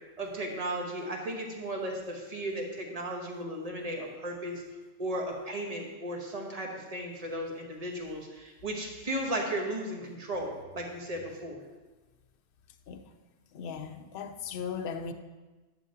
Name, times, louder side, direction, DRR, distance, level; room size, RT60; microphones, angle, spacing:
voice 1, 0.2-4.6 5.0-11.6, right 1 dB, 35° right, 1 dB, 1.1 m, -35 dB
voice 2, 13.5-15.1, left 6 dB, 60° left, 7 dB, 0.7 m, -37 dB
11.0 x 7.3 x 2.8 m, 1.2 s
omnidirectional pair, 1.2 m